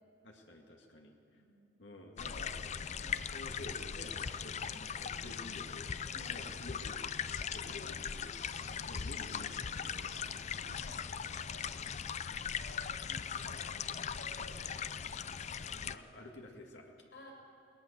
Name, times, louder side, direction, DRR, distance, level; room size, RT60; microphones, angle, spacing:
voice 1, 0.2-1.4 1.8-2.5 3.3-5.9 6.3-7.0 7.5-8.3 8.9-10.8 11.6-12.2 15.7-17.1, left 1 dB, 85° left, 1 dB, 2.1 m, -51 dB
voice 2, 2.0-3.3 4.3-4.9 6.1-6.5 7.6-8.0 8.4-8.9 10.5-11.7 12.6-15.6 17.1-17.3, equal, 65° left, 1 dB, 6.1 m, -55 dB
sound 1, 2.2-16.0, left 7 dB, 40° left, 0.5 m, -39 dB
22.0 x 18.5 x 6.7 m, 2.8 s
head